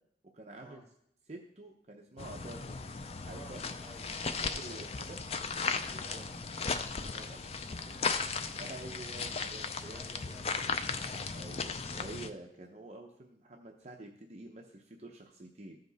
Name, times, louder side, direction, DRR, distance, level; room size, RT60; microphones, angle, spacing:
voice 1, 0.3-0.8 1.3-2.8 3.2-3.6 4.4-5.2 5.9-6.2 7.1-7.4 8.6-10.3 11.3-15.8, right 2 dB, 40° right, 1 dB, 0.7 m, -48 dB
sound 1, 2.2-12.3, left 5 dB, 35° left, 0.4 m, -36 dB
voice 2, 3.2-3.5 3.8-5.1 6.0-6.5 7.1-8.2 9.9-11.4, equal, 10° left, -6 dB, 2.6 m, -55 dB
14.5 x 5.2 x 4.0 m, 0.74 s
head